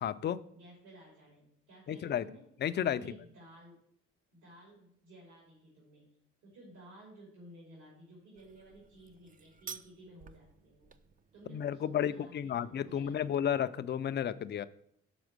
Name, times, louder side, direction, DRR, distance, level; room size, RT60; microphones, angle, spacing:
voice 1, 0.0-0.4 1.9-2.3 2.6-3.0 11.5-14.7, left 9 dB, 35° left, 13 dB, 0.4 m, -32 dB
voice 2, 0.5-2.5 2.9-3.8 4.3-6.1 6.4-10.9 11.3-13.4, right 1 dB, 75° right, -5 dB, 2.9 m, -55 dB
sound 1, 8.3-13.4, right 6 dB, 30° right, 0.4 m, -53 dB
6.1 x 4.3 x 6.5 m, 0.70 s
cardioid pair, 90°, 30 cm